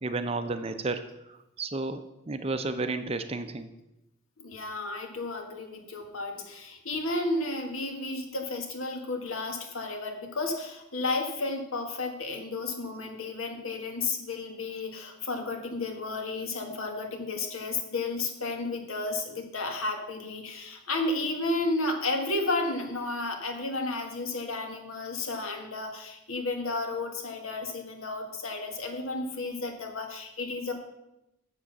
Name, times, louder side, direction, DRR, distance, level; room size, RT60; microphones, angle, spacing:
voice 1, 0.0-3.7, right 3 dB, 30° right, 9 dB, 0.5 m, -32 dB
voice 2, 4.4-30.7, left 2 dB, 80° left, 4 dB, 1.5 m, -32 dB
7.4 x 7.3 x 6.5 m, 0.91 s
head